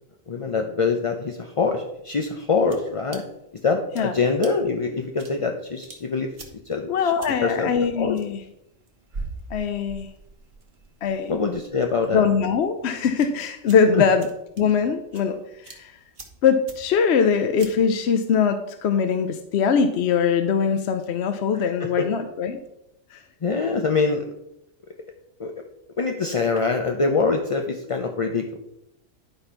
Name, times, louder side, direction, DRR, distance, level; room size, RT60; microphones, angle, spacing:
voice 1, 0.3-3.2 3.6-6.3 6.7-6.9 7.4-7.7 8.0-8.2 11.3-12.3 13.9-14.1 21.8-22.0 23.4-24.2 25.4-25.5 26.0-28.6, left 4 dB, 35° left, 3 dB, 0.5 m, -24 dB
sound 1, 1.9-18.0, right 3 dB, 50° right, 1.5 m, -45 dB
voice 2, 6.9-8.4 9.5-10.1 11.0-11.3 12.1-14.3 14.6-16.0 16.4-22.6 23.1-23.2, left 6 dB, 60° left, 8 dB, 0.8 m, -22 dB
11.5 x 4.3 x 5.6 m, 0.83 s
omnidirectional pair, 1.3 m